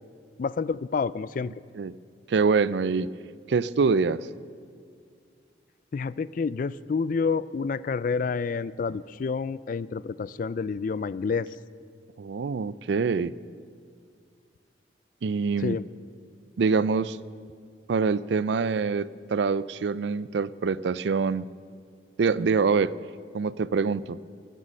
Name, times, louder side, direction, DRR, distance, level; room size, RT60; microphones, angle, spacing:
voice 1, 0.4-1.5 5.9-11.5 15.6-15.8, left 5 dB, 45° left, 18 dB, 0.3 m, -29 dB
voice 2, 2.3-3.1 3.5-4.3 12.2-13.3 15.2-15.8 16.6-17.2 17.9-21.4 22.2-23.0 23.3-24.2, right 5 dB, 70° right, 18 dB, 0.4 m, -25 dB
24.5 x 8.3 x 6.4 m, 2.1 s
head